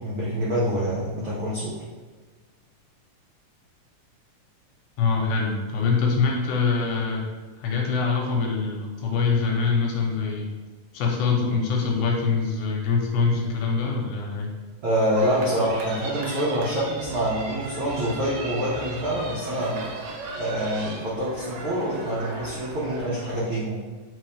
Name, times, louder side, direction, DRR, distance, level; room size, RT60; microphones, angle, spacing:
voice 1, 0.0-1.8 14.8-19.8 20.4-23.8, equal, 90° right, -8 dB, 1.1 m, -26 dB
voice 2, 5.0-7.2 7.6-10.5 10.9-14.5, left 4 dB, 80° left, 0 dB, 2.0 m, -24 dB
sound 1, 15.2-23.4, right 3 dB, 75° right, 1.7 m, -37 dB
4.1 x 3.8 x 3.2 m, 1.4 s
omnidirectional pair, 3.7 m